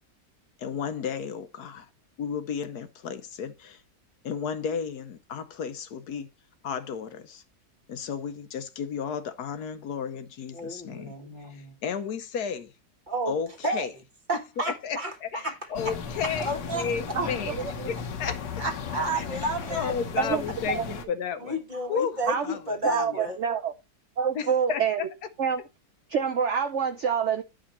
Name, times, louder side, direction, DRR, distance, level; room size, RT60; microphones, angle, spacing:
voice 1, 0.6-1.9 2.2-3.8 4.2-6.3 6.6-7.4 7.9-11.1 11.5-12.7 13.3-13.9 14.6-17.6 17.9-18.4 19.1-19.4 19.7-21.6 21.9-23.3 24.3-25.1, left 7 dB, 70° left, 1.2 m, -33 dB
voice 2, 10.5-11.7 13.1-13.3 13.6-13.9 14.3-15.5 16.4-16.9 18.6-19.9 21.4-23.4, right 1 dB, 30° right, 1.5 m, -31 dB
sound 1, 15.7-21.0, left 6 dB, 85° left, 1.6 m, -36 dB
voice 3, 17.1-17.6 20.2-20.8 22.3-22.5 22.8-23.7 24.2-25.0 25.4-25.6 26.1-27.4, right 7 dB, 65° right, 0.7 m, -26 dB
10.5 x 5.2 x 4.2 m
omnidirectional pair, 1.8 m